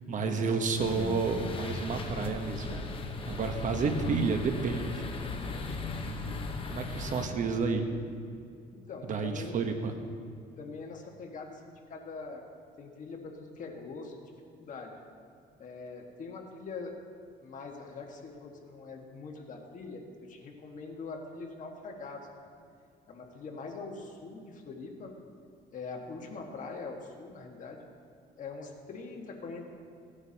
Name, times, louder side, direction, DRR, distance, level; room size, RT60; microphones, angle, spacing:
voice 1, 0.1-2.8 3.3-5.1 5.6-5.8 6.0-6.4 6.7-7.9 9.1-9.9, right 4 dB, 50° right, 6 dB, 1.1 m, -31 dB
sound 1, 0.8-7.3, left 3 dB, 30° left, 1.0 m, -37 dB
voice 2, 8.7-9.6 10.6-12.4 12.8-14.3 14.6-15.0 15.6-17.0 17.4-22.5 23.1-25.1 25.7-27.9 28.3-29.6, left 4 dB, 50° left, 1 dB, 1.7 m, -43 dB
17.0 x 9.8 x 2.9 m, 2.4 s
cardioid pair, 110°, 17 cm